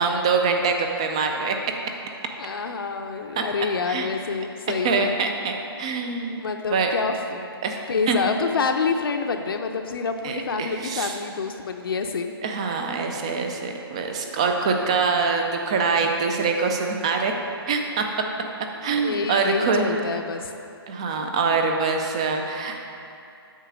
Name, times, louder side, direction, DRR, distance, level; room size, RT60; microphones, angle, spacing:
voice 1, 0.0-1.6 3.4-3.5 3.8-4.1 4.8-6.4 6.7-6.9 7.6-8.2 10.2-11.1 12.4-17.3 17.7-18.1 18.8-20.1 20.9-22.8, right 4 dB, 15° right, 4 dB, 0.3 m, -24 dB
voice 2, 2.4-5.2 6.4-7.5 7.9-12.3 18.8-20.5, left 5 dB, 60° left, 4 dB, 0.6 m, -27 dB
8.2 x 5.6 x 6.1 m, 2.6 s
hypercardioid pair, 165°, 13 cm